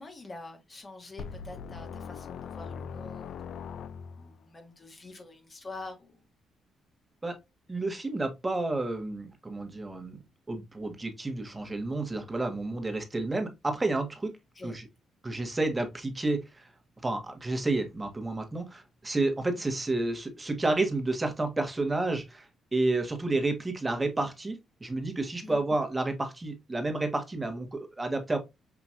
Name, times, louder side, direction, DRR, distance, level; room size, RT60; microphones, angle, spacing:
voice 1, 0.0-6.2 14.5-14.8 19.5-19.6 25.4-25.6, left 2 dB, 30° left, 1.3 m, -46 dB
sound 1, 1.2-4.4, left 6 dB, 70° left, 0.3 m, -41 dB
voice 2, 7.7-10.2 10.5-14.3 14.6-14.8 15.2-16.7 17.0-28.4, right 2 dB, 15° right, 1.3 m, -30 dB
5.8 x 2.9 x 2.5 m
cardioid pair, 90°, 0 cm